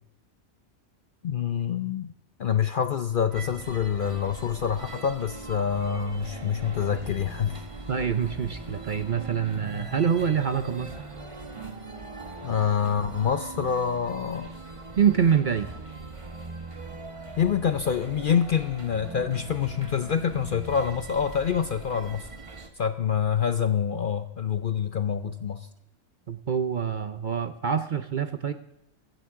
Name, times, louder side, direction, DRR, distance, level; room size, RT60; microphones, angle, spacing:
voice 1, 1.2-2.1 2.4-7.6 12.4-14.5 17.4-22.3 22.8-25.7, left 7 dB, 55° left, 10 dB, 0.6 m, -26 dB
sound 1, 3.3-22.7, right 2 dB, 25° right, 1.2 m, -41 dB
voice 2, 7.9-10.9 15.0-15.7 26.3-28.5, right 7 dB, 50° right, 10 dB, 0.6 m, -25 dB
15.5 x 14.0 x 3.7 m, 0.88 s
omnidirectional pair, 1.4 m